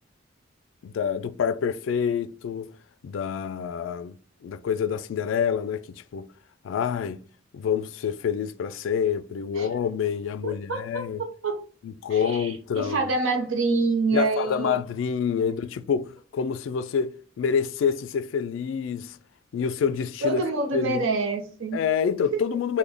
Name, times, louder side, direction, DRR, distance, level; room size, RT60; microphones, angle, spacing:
voice 1, 0.8-2.7 3.0-4.1 4.4-6.3 6.6-7.2 7.5-11.2 11.8-13.0 14.1-19.2 19.5-20.4 20.7-21.0 21.7-22.8, left 7 dB, 70° left, 0.3 m, -27 dB
voice 2, 10.4-11.6 12.1-14.8 20.2-21.8, right 3 dB, 85° right, 0.7 m, -27 dB
3.3 x 2.1 x 3.7 m
head